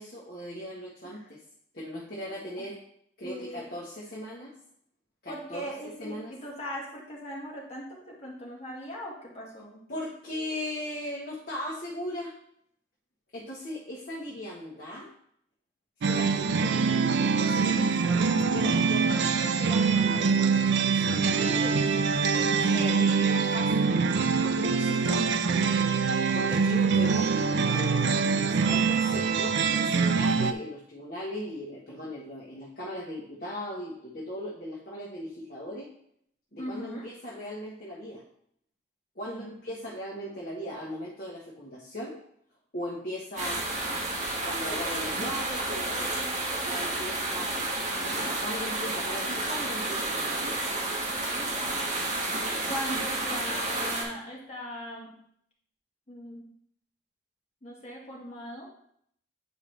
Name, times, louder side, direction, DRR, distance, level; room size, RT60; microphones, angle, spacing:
voice 1, 0.0-1.4 1.7-2.8 3.2-4.5 5.2-5.6 6.0-6.3 9.9-12.3 13.3-15.1 16.0-22.1 22.6-24.0 24.4-26.0 26.3-27.3 27.7-35.9 36.5-38.2 39.1-42.2 42.7-43.7 44.4-50.5, equal, 50° left, -5 dB, 1.3 m, -38 dB
voice 2, 3.2-3.8 5.3-9.8 18.0-19.4 36.6-37.1 39.3-39.6 52.7-55.2 56.1-56.5 57.6-58.7, equal, 35° left, -3 dB, 1.8 m, -40 dB
sound 1, 16.0-30.5, right 5 dB, 65° right, 0.4 m, -24 dB
sound 2, 43.4-54.0, right 2 dB, 40° right, 1.5 m, -31 dB
9.1 x 4.7 x 3.4 m, 0.69 s
head